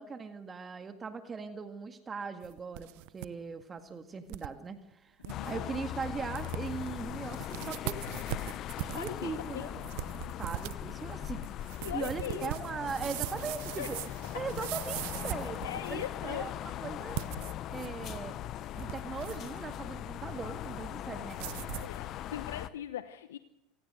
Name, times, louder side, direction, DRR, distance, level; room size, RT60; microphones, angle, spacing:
voice 1, 0.0-5.2 5.5-8.0 8.9-9.7 10.4-11.4 11.7-14.0 14.3-16.5 16.8-17.3 17.7-18.4 18.7-21.7, right 5 dB, 25° right, 7 dB, 1.9 m, -40 dB
sound 1, 2.4-3.3 3.6-3.7 4.3-4.5 4.9-5.0 5.2-5.5 6.0-6.1 6.4-6.9 7.3-16.1 17.0-18.3 18.6-19.6 21.3-22.0, right 20 dB, 65° right, 0.8 m, -40 dB
voice 2, 5.2-5.7 8.9-9.8 11.8-12.5 13.8-14.5 15.4-16.6 21.8-23.4, left 10 dB, 80° left, 12 dB, 0.9 m, -40 dB
sound 2, 5.3-22.7, left 12 dB, 50° left, 0.9 m, -40 dB
26.5 x 17.0 x 6.5 m, 0.90 s
hypercardioid pair, 80°, 0 cm